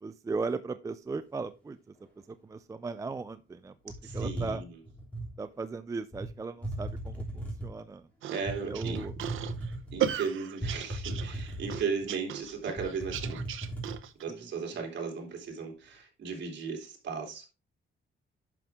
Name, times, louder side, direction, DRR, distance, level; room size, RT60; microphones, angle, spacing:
voice 1, 0.0-1.9 2.3-4.6 5.4-8.1 8.4-9.1 14.3-14.8, right 4 dB, 15° right, 11 dB, 0.4 m, -38 dB
sound 1, 3.9-5.3 6.1-6.3 6.6-7.8 8.5-10.1 10.6-12.0 12.4-12.5 12.8-14.0, right 1 dB, 5° left, 3.3 m, -36 dB
voice 2, 4.0-4.6 8.3-9.0 9.9-13.4 14.2-17.5, right 5 dB, 60° right, 1 dB, 3.1 m, -36 dB
sound 2, 8.2-14.2, right 10 dB, 85° right, 0.8 m, -36 dB
10.5 x 6.1 x 3.5 m, 0.29 s
wide cardioid pair, 165°, 20 cm